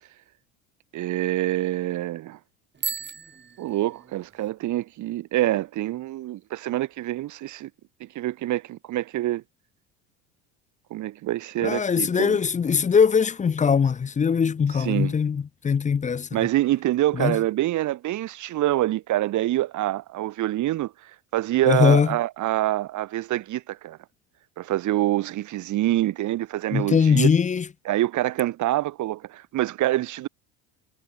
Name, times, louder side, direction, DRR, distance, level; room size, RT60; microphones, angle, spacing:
voice 1, 0.9-2.4 3.6-7.7 8.0-9.4 10.9-12.4 14.7-15.1 16.3-20.9 21.3-24.0 24.6-27.3 27.9-30.3, right 15 dB, 50° right, 1.7 m, -26 dB
Bicycle bell, 2.7-4.5, right 6 dB, 30° right, 4.7 m, -35 dB
voice 2, 11.6-16.3 17.2-17.4 21.7-22.1 26.7-27.6, left 6 dB, 20° left, 0.7 m, -21 dB
hypercardioid pair, 90°, 38 cm